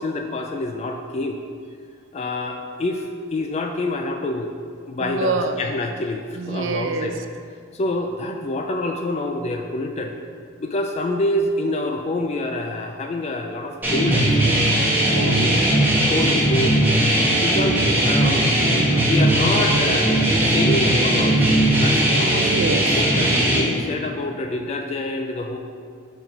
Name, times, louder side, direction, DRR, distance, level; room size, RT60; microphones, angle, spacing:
voice 1, 0.0-1.4 2.1-4.6 4.9-7.2 7.7-10.1 10.6-14.5 16.1-16.8 17.4-18.5 19.0-22.5 22.9-25.6, left 2 dB, 30° left, 4 dB, 0.3 m, -26 dB
voice 2, 5.0-5.5 6.4-7.1 15.2-15.9 22.4-23.0, right 3 dB, 65° right, 7 dB, 0.5 m, -26 dB
sound 1, 13.8-23.6, right 1 dB, 10° right, 1.1 m, -18 dB
5.9 x 4.4 x 5.2 m, 2.2 s
head